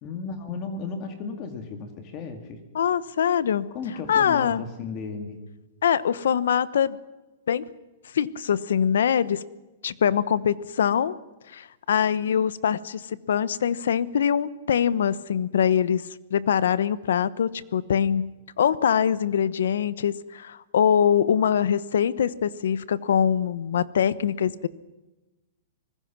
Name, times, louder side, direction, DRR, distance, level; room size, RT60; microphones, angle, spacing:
voice 1, 0.0-2.6 3.7-5.4, left 4 dB, 25° left, 7 dB, 2.0 m, -34 dB
voice 2, 2.7-3.7 4.1-4.6 5.8-7.0 7.5-7.6 8.1-9.4 9.8-11.1 11.5-16.0 16.3-24.7, left 8 dB, 85° left, 18 dB, 1.0 m, -23 dB
25.0 x 20.0 x 6.0 m, 1.1 s
supercardioid pair, 170°, 0 cm